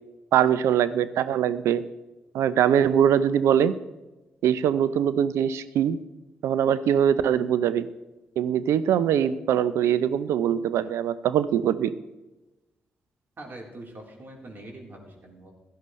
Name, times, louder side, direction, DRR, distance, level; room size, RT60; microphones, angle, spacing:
voice 1, 0.3-1.8 2.3-3.8 4.4-6.0 6.4-7.9 8.4-11.9, right 9 dB, 75° right, 15 dB, 0.6 m, -22 dB
voice 2, 13.4-15.5, right 1 dB, 45° right, -1 dB, 3.8 m, -43 dB
16.0 x 12.0 x 3.2 m, 1.1 s
hypercardioid pair, 40°, 5 cm